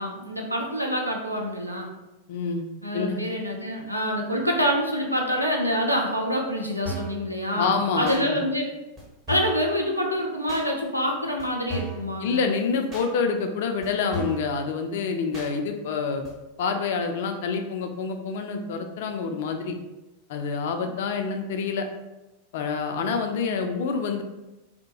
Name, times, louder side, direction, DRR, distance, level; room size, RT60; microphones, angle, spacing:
voice 1, 0.0-1.9 2.8-8.7 9.3-12.4, equal, 90° right, 0 dB, 0.4 m, -26 dB
voice 2, 2.3-2.6 2.9-3.2 7.5-8.4 12.2-16.2 16.6-19.8 20.3-21.9 22.5-24.2, left 5 dB, 55° left, 5 dB, 0.3 m, -27 dB
sound 1, 6.9-7.2 8.1-8.2 9.0-9.1 9.3-9.6 10.5-10.7 11.4-11.5 11.7-12.1 12.9-13.1 13.8-13.9 14.1-14.5 15.3-15.5 16.2-16.3, right 1 dB, 30° right, 0.9 m, -34 dB
2.7 x 2.1 x 2.8 m, 1.0 s
figure-of-eight pair, 90°, 0 cm